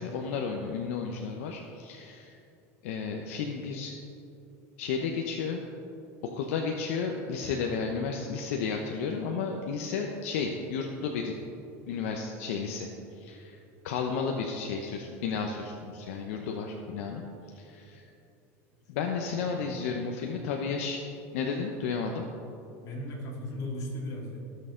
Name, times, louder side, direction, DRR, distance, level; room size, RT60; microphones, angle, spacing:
voice 1, 0.0-2.3 2.8-3.9 4.8-5.6 6.2-11.3 11.9-12.9 13.2-13.6 13.8-17.2 17.5-18.0 18.9-21.0 21.3-22.2, left 5 dB, 80° left, 2 dB, 0.9 m, -32 dB
voice 2, 22.8-24.4, left 1 dB, 50° left, -3 dB, 2.9 m, -37 dB
17.5 x 6.6 x 3.8 m, 2.7 s
supercardioid pair, 110°, 8 cm